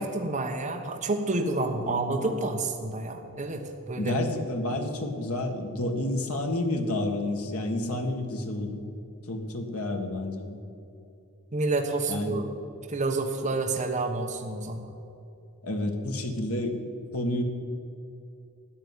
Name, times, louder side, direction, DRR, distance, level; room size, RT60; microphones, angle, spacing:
voice 1, 0.0-4.1 11.5-12.4 12.9-14.9, right 2 dB, 35° right, 2 dB, 1.1 m, -29 dB
voice 2, 1.8-2.2 3.9-8.8 9.3-10.6 12.1-12.4 15.6-16.8 17.1-17.4, left 1 dB, 80° left, 4 dB, 1.8 m, -30 dB
13.0 x 9.6 x 9.7 m, 2.7 s
head